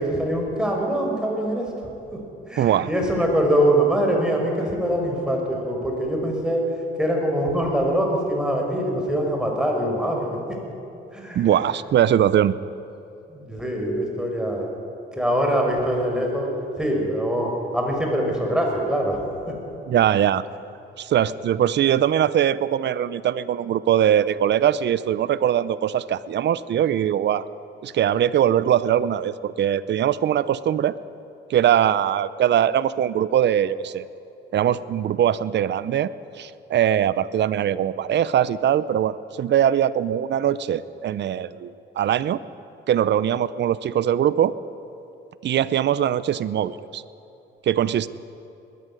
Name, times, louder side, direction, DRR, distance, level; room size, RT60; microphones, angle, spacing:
voice 1, 0.0-1.7 2.1-2.2 2.5-6.7 7.0-10.4 11.1-11.5 13.3-14.7 15.1-16.5 16.8-19.5, equal, 5° right, 0 dB, 5.3 m, -23 dB
voice 2, 2.6-2.9 11.3-12.5 19.9-20.4 21.0-27.5 27.8-30.9 31.5-34.1 34.5-42.4 42.9-44.5 45.4-47.0 47.6-48.1, right 10 dB, 60° right, 17 dB, 0.7 m, -21 dB
20.5 x 13.0 x 9.9 m, 2.8 s
cardioid pair, 90°, 20 cm